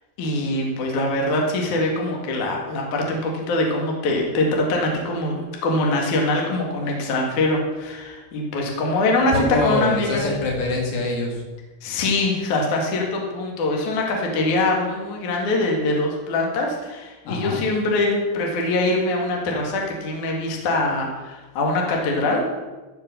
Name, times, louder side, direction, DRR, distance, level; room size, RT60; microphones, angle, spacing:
voice 1, 0.2-5.4 5.6-10.3 11.8-22.4, left 2 dB, 50° left, 0 dB, 2.4 m, -23 dB
voice 2, 9.2-11.4 17.3-17.6, left 2 dB, 70° left, 0 dB, 4.5 m, -24 dB
15.0 x 5.8 x 6.9 m, 1.2 s
omnidirectional pair, 6.0 m